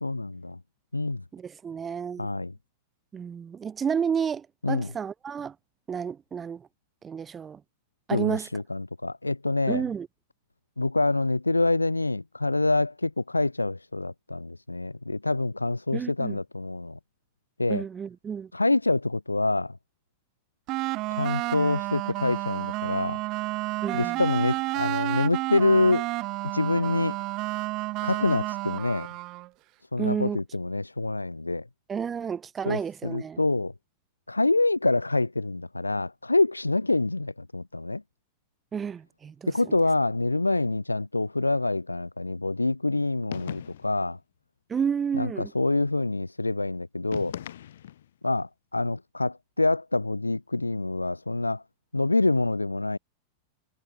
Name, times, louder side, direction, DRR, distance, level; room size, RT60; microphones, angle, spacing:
voice 1, 0.0-0.6 0.9-1.2 2.2-2.5 4.6-4.9 8.1-9.8 10.8-17.0 17.6-17.8 18.5-19.8 21.1-23.2 23.9-26.1 26.4-27.2 28.0-29.1 29.9-31.7 32.7-33.7 34.3-38.0 39.5-44.2 45.2-47.3 48.2-51.6 51.9-53.0, left 2 dB, 85° left, 0.6 m, -26 dB
voice 2, 1.3-2.3 3.1-5.6 5.9-6.7 7.0-7.6 8.1-8.5 9.7-10.1 15.9-16.4 17.7-18.5 23.8-24.2 30.0-30.4 31.9-33.4 38.7-39.8 44.7-45.5, right 7 dB, 20° right, 1.8 m, -31 dB
sound 1, 20.7-29.5, right 20 dB, 40° right, 0.3 m, -31 dB
sound 2, 43.3-44.0 47.1-48.1, left 11 dB, 60° left, 2.1 m, -38 dB
figure-of-eight pair, 90°, 0 cm